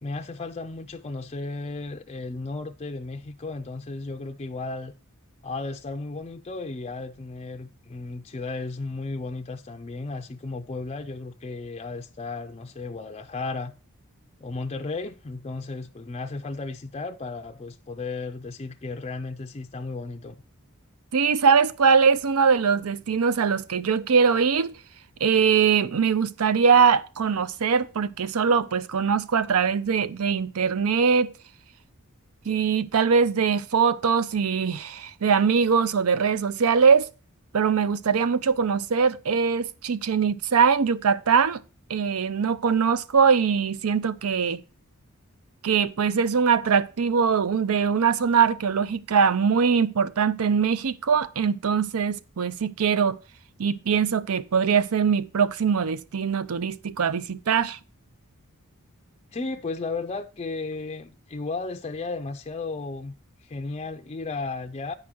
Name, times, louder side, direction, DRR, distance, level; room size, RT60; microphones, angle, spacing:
voice 1, 0.0-4.9 5.4-13.8 14.4-20.4 59.3-63.1 63.4-65.0, left 3 dB, 30° left, 0.4 m, -34 dB
voice 2, 21.1-24.8 25.2-31.3 32.5-37.1 37.5-41.6 41.9-44.6 45.6-53.2 53.6-57.8, right 6 dB, 75° right, 0.5 m, -22 dB
9.4 x 4.9 x 6.1 m
head